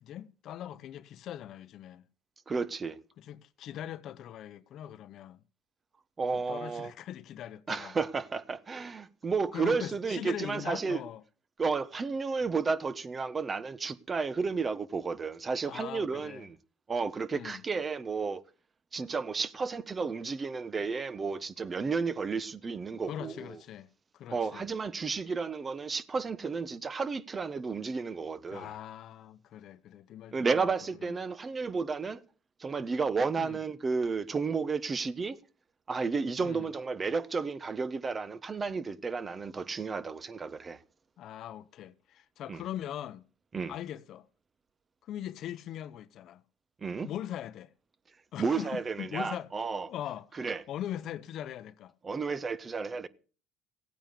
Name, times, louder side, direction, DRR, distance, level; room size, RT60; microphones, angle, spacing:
voice 1, 0.0-2.0 3.2-5.4 6.3-7.9 9.5-11.2 15.6-16.5 17.3-17.6 23.1-23.9 24.1-24.7 28.5-30.7 31.0-31.2 33.4-33.6 36.4-36.7 41.2-43.3 43.7-44.3 45.0-46.4 47.0-47.7 48.3-49.5 49.9-51.9, left 11 dB, 55° left, 0.9 m, -41 dB
voice 2, 2.5-3.0 6.2-6.9 7.7-11.0 11.6-16.6 16.9-18.4 18.9-23.6 24.3-28.7 30.3-32.2 32.6-35.4 35.9-40.8 42.5-42.6 43.5-43.7 46.8-47.1 48.4-49.9 50.4-50.6 52.0-53.1, right 4 dB, 25° right, 1.2 m, -32 dB
16.0 x 9.1 x 6.7 m
supercardioid pair, 90°, 0 cm